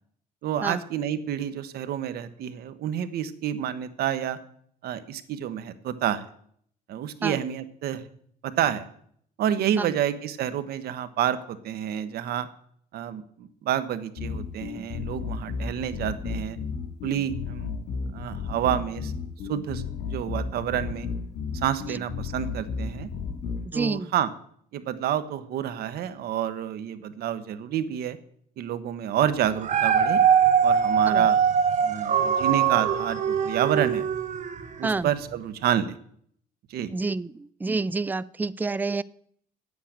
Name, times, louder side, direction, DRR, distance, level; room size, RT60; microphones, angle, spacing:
voice 1, 0.4-4.4 4.8-6.2 6.9-8.0 8.4-8.9 9.4-12.5 12.9-16.6 17.0-17.7 18.1-19.1 19.5-21.1 21.5-23.1 23.7-24.3 24.7-28.2 28.6-30.2 30.6-31.4 31.8-34.0 34.8-36.0 36.7-36.9, right 10 dB, 70° right, 12 dB, 1.2 m, -29 dB
sound 1, 14.2-23.6, left 5 dB, 80° left, 3.0 m, -33 dB
voice 2, 23.7-24.1 31.1-31.2 34.8-35.1 36.9-37.3 37.6-39.0, right 3 dB, 10° right, 19 dB, 0.4 m, -28 dB
Dog, 29.4-34.8 35.3-35.4, right 7 dB, 45° right, 1.4 m, -22 dB
9.7 x 8.4 x 8.8 m, 0.64 s
cardioid pair, 110°, 17 cm